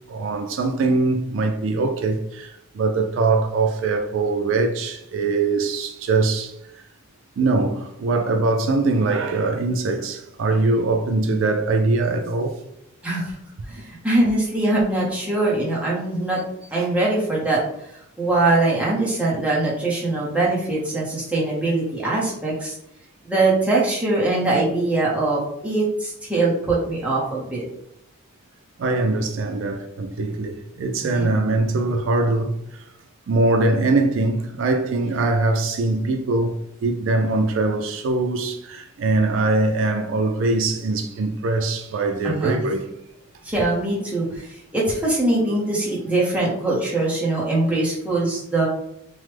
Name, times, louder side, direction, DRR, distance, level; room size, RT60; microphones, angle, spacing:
voice 1, 0.1-6.5 7.4-12.6 28.8-32.6 33.3-36.6 36.8-42.9, right 3 dB, 70° right, 0.3 m, -22 dB
voice 2, 13.0-13.3 13.7-16.5 16.7-17.9 18.2-22.8 23.2-27.6 31.0-31.3 42.2-42.6 43.4-48.7, right 2 dB, 5° right, 0.8 m, -22 dB
3.1 x 2.1 x 3.2 m
head